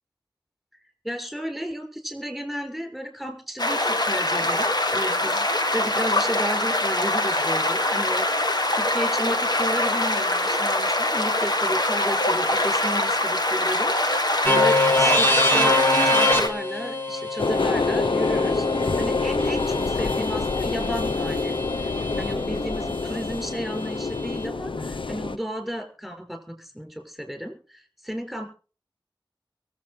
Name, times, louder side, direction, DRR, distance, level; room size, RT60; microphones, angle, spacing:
voice 1, 1.0-18.7 19.0-21.9 22.2-28.5, equal, ahead, 3 dB, 6.4 m, -33 dB
sound 1, 3.6-16.5, left 1 dB, 55° left, 1.8 m, -23 dB
sound 2, 14.4-22.3, left 1 dB, 25° left, 2.4 m, -25 dB
sound 3, 17.4-25.4, left 3 dB, 85° left, 0.6 m, -26 dB
23.5 x 8.1 x 5.0 m, 0.40 s
wide cardioid pair, 50°, 8 cm